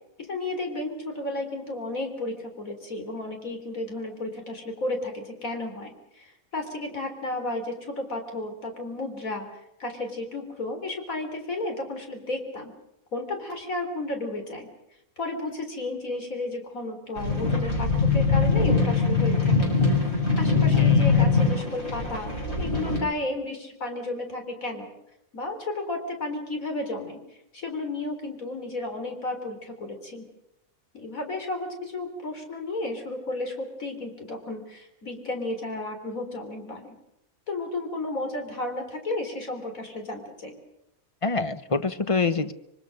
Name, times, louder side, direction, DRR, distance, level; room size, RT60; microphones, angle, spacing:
voice 1, 0.2-9.5 9.8-12.7 13.1-14.7 15.2-19.7 20.4-22.3 22.6-24.9 25.3-27.2 27.5-30.2 30.9-37.0 37.5-40.6, left 2 dB, 80° left, 4 dB, 4.2 m, -33 dB
sound 1, 17.2-23.0, left 4 dB, 50° left, 7.0 m, -22 dB
voice 2, 20.7-21.2 41.2-42.5, left 4 dB, 25° left, 11 dB, 0.9 m, -26 dB
25.5 x 24.5 x 6.5 m, 0.86 s
omnidirectional pair, 1.4 m